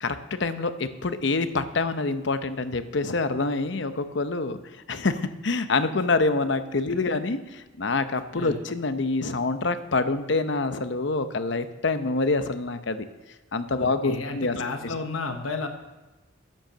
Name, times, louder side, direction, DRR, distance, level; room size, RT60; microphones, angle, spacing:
voice 1, 0.0-4.6 4.9-13.0 13.5-14.9, left 3 dB, 60° left, 10 dB, 0.8 m, -26 dB
voice 2, 13.8-15.7, left 4 dB, 80° left, 5 dB, 1.0 m, -32 dB
10.0 x 9.1 x 6.8 m, 1.1 s
head